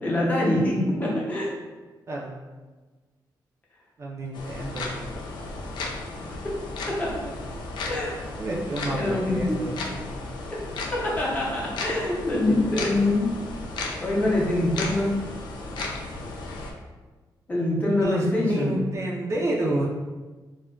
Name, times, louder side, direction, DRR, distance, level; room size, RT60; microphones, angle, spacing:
voice 1, 0.0-1.5 6.4-6.5 6.9-7.2 7.9-8.2 8.9-9.6 10.5-10.6 10.9-13.3 14.0-15.2 17.5-18.8, left 1 dB, 20° left, -5 dB, 0.6 m, -24 dB
voice 2, 4.0-5.2 8.4-10.0 18.0-19.9, right 1 dB, 40° right, -3 dB, 0.4 m, -30 dB
sound 1, 4.3-16.7, left 2 dB, 80° left, 0.4 m, -35 dB
2.2 x 2.1 x 3.6 m, 1.3 s
wide cardioid pair, 140°, 8 cm